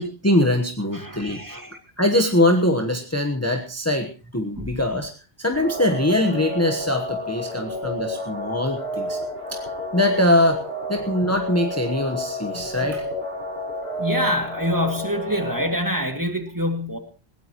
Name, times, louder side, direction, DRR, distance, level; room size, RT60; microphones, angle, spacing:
voice 1, 0.0-1.4 2.0-5.1 5.4-9.2 9.5-9.6 9.9-10.6 10.9-13.1, left 1 dB, 15° left, 3 dB, 1.2 m, -22 dB
voice 2, 0.9-1.8 4.6-4.7 12.5-12.7 14.0-17.0, equal, 15° right, 4 dB, 2.4 m, -26 dB
sound 1, 5.5-15.7, left 1 dB, 70° right, 4.9 m, -31 dB
20.5 x 17.0 x 3.1 m, 0.34 s
omnidirectional pair, 1.1 m